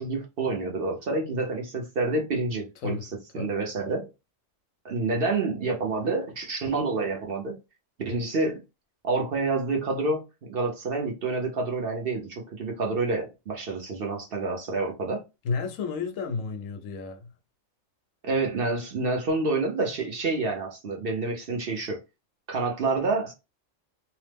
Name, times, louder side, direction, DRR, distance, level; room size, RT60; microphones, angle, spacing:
voice 1, 0.0-3.0 3.3-4.1 4.8-7.6 8.1-8.6 9.0-15.2 18.2-22.0 22.5-23.3, right 3 dB, 55° right, 0.8 m, -28 dB
voice 2, 15.4-17.3, left 5 dB, 75° left, 1.0 m, -31 dB
2.9 x 2.0 x 3.3 m
omnidirectional pair, 1.4 m